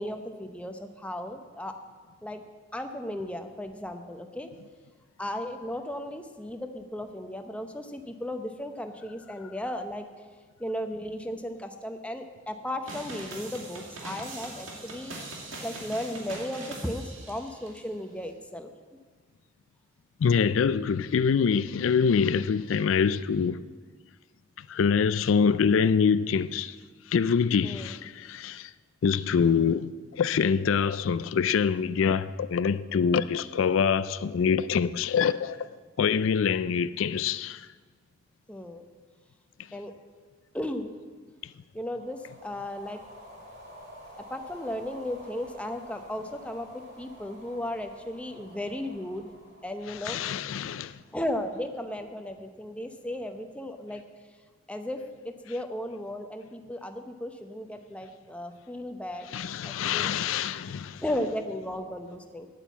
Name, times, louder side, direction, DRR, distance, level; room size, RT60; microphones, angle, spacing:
voice 1, 0.0-1.7 2.2-2.4 2.7-4.5 5.2-10.0 10.6-15.2 15.6-18.7 27.6-27.9 38.5-38.8 39.7-39.9 40.5-40.9 41.7-43.0 44.3-49.3 49.6-50.2 51.1-54.0 54.7-59.3 59.6-60.1 61.0-62.5, left 1 dB, 5° left, 0.7 m, -35 dB
sound 1, 12.9-17.8, right 2 dB, 90° right, 2.5 m, -41 dB
voice 2, 20.2-23.6 24.6-26.8 27.1-28.7 29.0-35.7 36.0-37.7 49.9-51.0 59.3-61.0, left 6 dB, 85° left, 0.4 m, -25 dB
sound 2, 41.8-51.3, equal, 40° right, 3.5 m, -50 dB
9.2 x 8.8 x 8.2 m
head